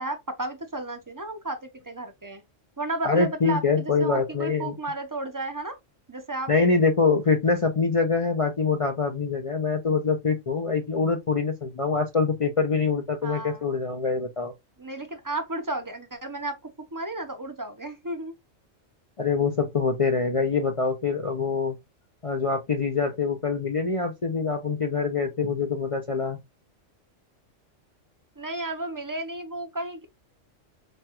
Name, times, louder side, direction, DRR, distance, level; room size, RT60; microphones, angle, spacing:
voice 1, 0.0-2.4 2.8-5.8 6.1-6.5 13.2-13.6 14.8-16.6 16.9-18.3 28.4-30.1, right 2 dB, 25° right, 0.5 m, -33 dB
voice 2, 3.0-4.7 6.5-14.5 19.2-21.8 22.2-26.4, left 4 dB, 50° left, 0.4 m, -24 dB
5.1 x 2.3 x 2.9 m
omnidirectional pair, 1.3 m